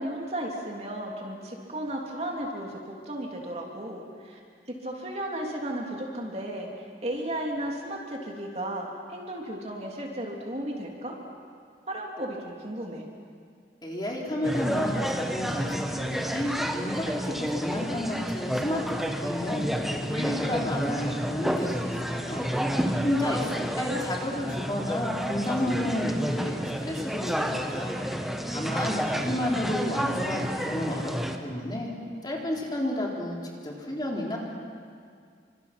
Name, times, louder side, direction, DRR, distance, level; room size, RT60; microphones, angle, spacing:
voice 1, 0.0-4.4 4.7-11.2 11.9-13.0 23.3-23.5 23.9-24.1, right 1 dB, 35° right, -1 dB, 3.3 m, -34 dB
voice 2, 13.8-19.7 20.1-22.5 23.0-28.0 28.5-31.1 31.4-31.9 32.2-33.4 33.6-34.4, left 1 dB, 25° left, -2 dB, 3.8 m, -31 dB
sound 1, 14.4-31.4, equal, ahead, 1.3 m, -30 dB
29.5 x 25.5 x 6.1 m, 2.1 s
head